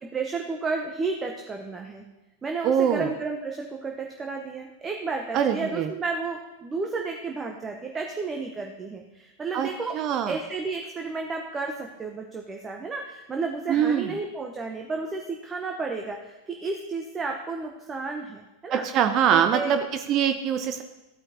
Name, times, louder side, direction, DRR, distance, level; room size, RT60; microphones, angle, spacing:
voice 1, 0.0-2.0 2.4-10.0 10.3-18.9 19.3-19.8, right 4 dB, 15° right, 3 dB, 0.9 m, -32 dB
voice 2, 2.6-3.1 5.3-5.9 9.5-9.7 9.9-10.4 13.7-14.1 18.7-20.8, right 8 dB, 35° right, 8 dB, 0.6 m, -23 dB
14.5 x 8.6 x 2.8 m, 1.0 s
figure-of-eight pair, 90°, 0 cm